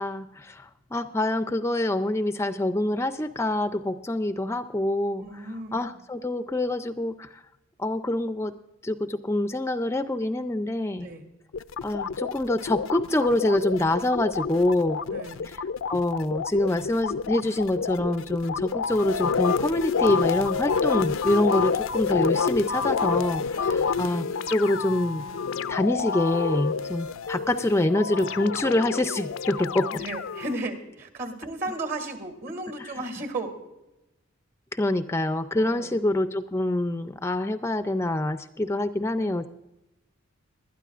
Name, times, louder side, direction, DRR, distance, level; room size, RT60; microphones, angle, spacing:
voice 1, 0.0-5.2 5.7-7.3 7.8-8.5 8.8-11.1 11.8-15.0 15.9-25.2 25.7-29.9 32.8-32.9 34.7-39.5, left 1 dB, 15° left, 9 dB, 0.4 m, -26 dB
voice 2, 5.2-5.9 11.0-11.2 15.1-15.4 23.6-23.9 29.9-33.5 35.5-36.0 39.1-39.5, right 2 dB, 50° right, 6 dB, 2.3 m, -35 dB
sound 1, 11.5-30.5, left 5 dB, 75° left, 0.4 m, -28 dB
21.0 x 12.5 x 2.5 m, 0.94 s
head